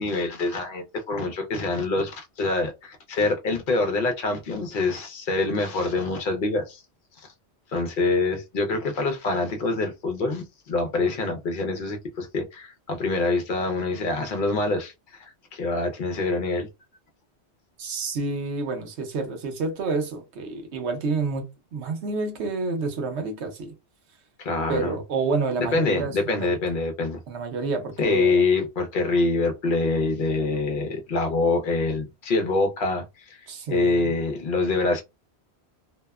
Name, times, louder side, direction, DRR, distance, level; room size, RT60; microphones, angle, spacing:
voice 1, 0.0-6.8 7.2-7.3 7.7-14.9 15.2-16.7 24.4-25.0 25.6-27.2 28.0-33.0 33.3-33.4 33.7-35.0, left 3 dB, 55° left, 0.7 m, -25 dB
voice 2, 17.8-21.4 21.7-23.7 24.7-26.6 27.3-28.4 33.5-34.1, right 4 dB, 80° right, 1.0 m, -29 dB
2.7 x 2.1 x 2.3 m
omnidirectional pair, 1.1 m